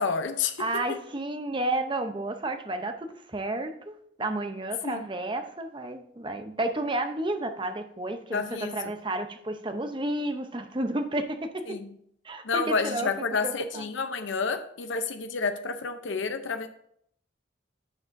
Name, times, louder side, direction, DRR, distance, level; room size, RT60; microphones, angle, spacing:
voice 1, 0.0-0.6 4.8-5.0 8.3-8.7 11.7-11.9 12.4-16.7, left 4 dB, 75° left, 8 dB, 0.6 m, -29 dB
voice 2, 0.6-11.8 12.2-13.9, right 2 dB, 25° right, 7 dB, 0.7 m, -31 dB
12.0 x 7.1 x 2.6 m, 0.69 s
head